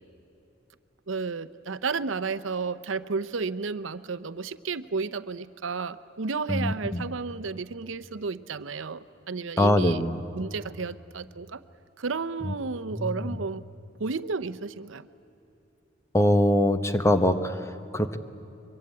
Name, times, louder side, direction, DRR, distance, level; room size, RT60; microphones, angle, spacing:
voice 1, 1.1-10.1 10.3-11.6 12.0-13.6 14.0-15.1, right 4 dB, 75° right, 13 dB, 0.7 m, -32 dB
voice 2, 6.5-7.0 9.6-10.2 13.0-13.1 16.1-18.2, left 1 dB, 15° left, 9 dB, 1.0 m, -23 dB
24.0 x 23.0 x 9.6 m, 2.9 s
head